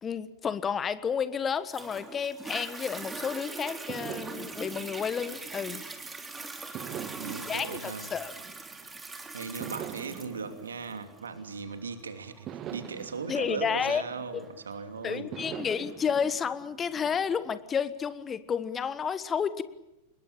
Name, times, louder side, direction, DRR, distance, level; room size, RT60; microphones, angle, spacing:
voice 1, 0.0-5.8 7.5-8.3 13.3-14.0 14.3-14.4 15.0-19.6, left 7 dB, 20° left, 14 dB, 1.4 m, -31 dB
Toilet flush, 1.7-14.7 15.3-15.4, right 3 dB, 10° right, 3.3 m, -42 dB
sound 1, 3.9-6.1 6.7-9.0 9.6-11.9 12.5-14.7 15.3-17.6, right 10 dB, 35° right, 1.6 m, -44 dB
voice 2, 6.8-8.1 9.3-15.3, right 5 dB, 70° right, 9 dB, 2.8 m, -38 dB
26.5 x 21.5 x 8.8 m, 0.92 s
figure-of-eight pair, 90°, 0 cm